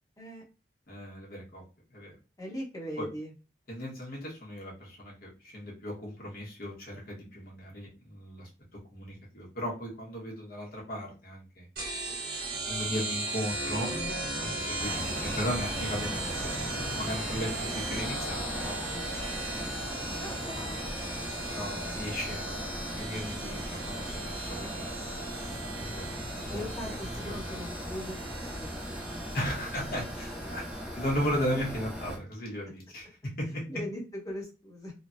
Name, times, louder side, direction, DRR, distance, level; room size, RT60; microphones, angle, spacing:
voice 1, 0.9-1.6 1.9-2.2 3.0-3.1 3.7-8.5 8.9-11.7 12.7-13.9 14.4-18.8 20.2-20.5 21.5-25.0 25.4-26.2 26.5-26.7 27.2-27.4 29.3-33.7, equal, 55° left, -3 dB, 1.3 m, -36 dB
voice 2, 2.4-3.3 14.8-15.0 20.2-21.1 26.5-28.8 29.2-29.6 33.7-34.9, equal, 20° left, -4 dB, 1.1 m, -40 dB
sound 1, 11.8-30.9, right 2 dB, 60° right, 1.2 m, -37 dB
sound 2, 14.8-32.2, equal, 5° right, 0.6 m, -39 dB
3.2 x 2.2 x 2.6 m, 0.32 s
head